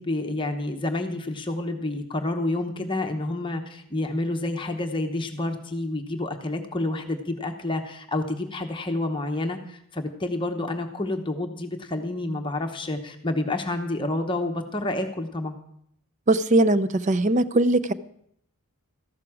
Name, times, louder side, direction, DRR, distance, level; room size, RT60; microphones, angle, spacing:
voice 1, 0.0-15.6, left 2 dB, 20° left, 4 dB, 0.9 m, -29 dB
voice 2, 16.3-17.9, right 2 dB, 35° right, 15 dB, 0.5 m, -20 dB
14.0 x 12.0 x 4.9 m, 0.70 s
head